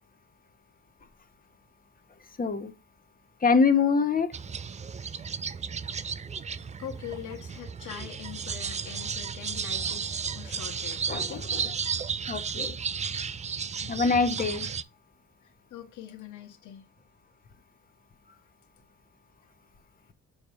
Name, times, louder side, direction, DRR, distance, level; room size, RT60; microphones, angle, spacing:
voice 1, 2.4-2.7 3.4-4.3 11.1-11.6 12.3-12.8 13.9-14.7, left 5 dB, 30° left, 1.0 m, -24 dB
sound 1, 4.3-14.8, right 6 dB, 25° right, 0.4 m, -34 dB
voice 2, 6.8-11.5 13.8-14.2 15.4-16.8, left 10 dB, 80° left, 1.3 m, -43 dB
7.0 x 3.1 x 5.6 m
cardioid pair, 90°, 30 cm